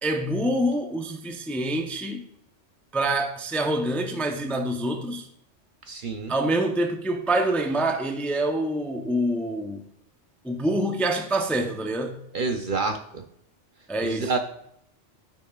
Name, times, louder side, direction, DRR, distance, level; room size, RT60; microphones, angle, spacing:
voice 1, 0.0-2.2 2.9-5.3 6.3-9.8 10.4-12.2 13.9-14.3, right 1 dB, ahead, 4 dB, 0.4 m, -26 dB
voice 2, 5.9-6.3 12.3-13.2 14.0-14.4, right 4 dB, 50° right, 5 dB, 0.7 m, -28 dB
13.5 x 6.0 x 2.3 m, 0.72 s
omnidirectional pair, 1.2 m